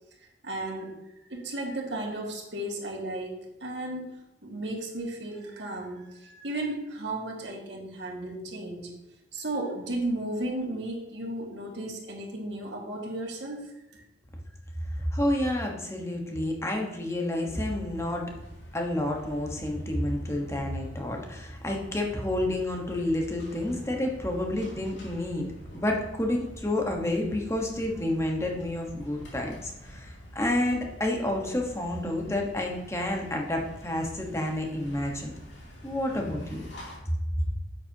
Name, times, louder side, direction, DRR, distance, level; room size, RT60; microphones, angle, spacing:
voice 1, 0.4-1.0 1.3-8.9 9.3-14.0, right 1 dB, 85° right, 0 dB, 2.0 m, -34 dB
voice 2, 15.1-18.4 18.7-25.5 25.7-35.3 35.8-36.6, left 1 dB, 15° left, 1 dB, 1.3 m, -29 dB
sound 1, 17.5-37.0, equal, 90° left, 2.6 m, -46 dB
9.8 x 7.5 x 2.9 m, 0.94 s
head